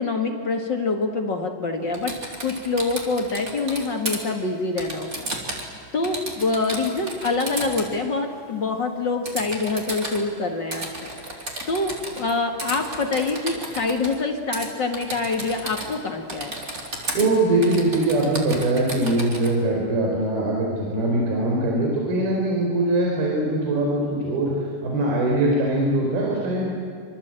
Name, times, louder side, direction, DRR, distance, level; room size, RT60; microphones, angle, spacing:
voice 1, 0.0-2.1 2.4-5.3 5.9-11.1 11.7-16.6, left 3 dB, 45° left, 3 dB, 1.4 m, -25 dB
Typing, 1.9-4.2 4.8-5.7 6.0-7.9 9.2-10.2 10.7-12.3 12.6-14.2 14.5-14.7 14.9-16.0 16.3-17.3 17.6-19.5, right 1 dB, 20° right, 3.5 m, -33 dB
voice 2, 17.1-26.7, right 1 dB, 65° right, -2 dB, 6.3 m, -22 dB
26.0 x 25.5 x 9.0 m, 2.2 s
omnidirectional pair, 4.8 m